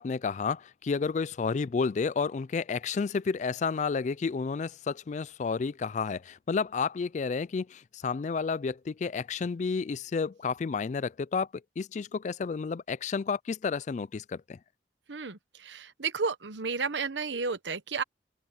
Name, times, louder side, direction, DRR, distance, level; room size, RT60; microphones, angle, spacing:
voice 1, 0.0-11.5 11.8-14.6, left 5 dB, 40° left, 0.3 m, -31 dB
voice 2, 15.1-18.0, right 5 dB, 80° right, 1.0 m, -32 dB
open air
head